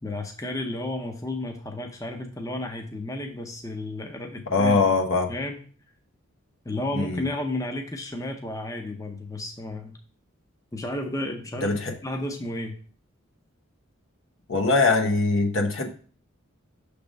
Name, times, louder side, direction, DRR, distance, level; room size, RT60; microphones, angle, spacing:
voice 1, 0.0-4.8 5.3-5.6 6.6-10.0 10.7-12.7, left 1 dB, 15° left, 0.6 m, -32 dB
voice 2, 4.5-5.3 6.9-7.2 11.6-11.9 14.5-15.9, left 3 dB, 65° left, 1.0 m, -22 dB
6.2 x 3.4 x 5.1 m
head